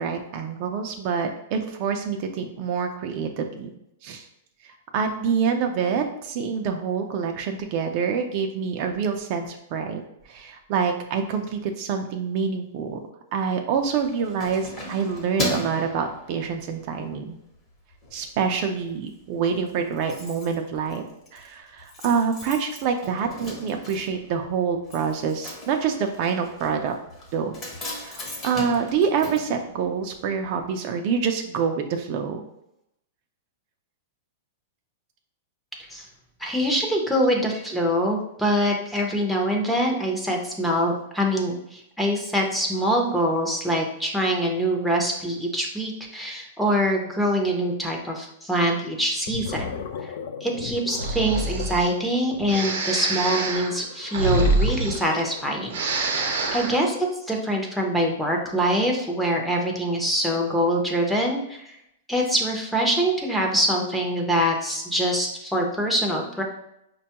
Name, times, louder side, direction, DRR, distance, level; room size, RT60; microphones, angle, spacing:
voice 1, 0.0-3.7 4.0-4.3 4.6-10.0 10.3-13.0 13.3-17.4 18.1-21.0 21.3-26.9 27.3-32.4, right 6 dB, 40° right, 4 dB, 0.4 m, -26 dB
Keys jangling, 13.8-16.9 17.3-17.6 17.9-18.6 18.9-19.0 19.2-19.3 19.5-30.3 30.6-30.7, equal, 25° left, 0.9 m, -36 dB
voice 2, 36.4-49.7 50.4-55.8 56.2-56.3 56.5-61.8 62.1-66.4, equal, ahead, -1 dB, 0.6 m, -24 dB
Gurgling, 48.5-48.8 49.1-55.6, left 7 dB, 65° left, 0.4 m, -37 dB
Breathing, 50.9-51.9 52.5-55.4 55.7-56.8, right 2 dB, 80° right, 0.7 m, -26 dB
5.0 x 2.2 x 2.9 m, 0.80 s
supercardioid pair, 155°, 0 cm